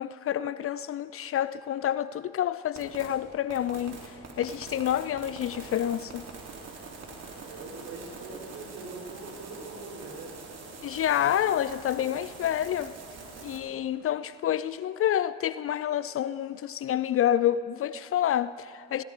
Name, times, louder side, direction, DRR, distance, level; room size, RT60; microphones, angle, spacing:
voice 1, 0.0-4.1 4.4-6.2 10.8-12.9 13.4-19.0, left 11 dB, 45° left, 0.4 m, -28 dB
sound 1, 2.8-3.1 3.5-13.6, right 4 dB, 50° right, 3.4 m, -44 dB
voice 2, 7.3-10.4, right 3 dB, 70° right, 4.1 m, -42 dB
19.5 x 17.0 x 3.8 m
hypercardioid pair, 55°, 32 cm